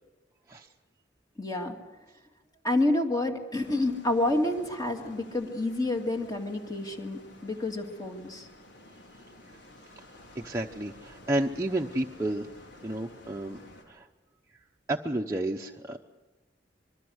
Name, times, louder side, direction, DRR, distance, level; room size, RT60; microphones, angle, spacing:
voice 1, 1.4-1.7 2.6-8.5, left 2 dB, 20° left, 4 dB, 2.2 m, -29 dB
sound 1, 3.5-13.8, left 1 dB, 90° left, 4.2 m, -52 dB
voice 2, 10.3-12.5 12.8-13.6 13.9-14.1 14.9-16.0, right 1 dB, 15° right, 0 dB, 0.9 m, -31 dB
26.0 x 23.0 x 6.4 m, 1.1 s
head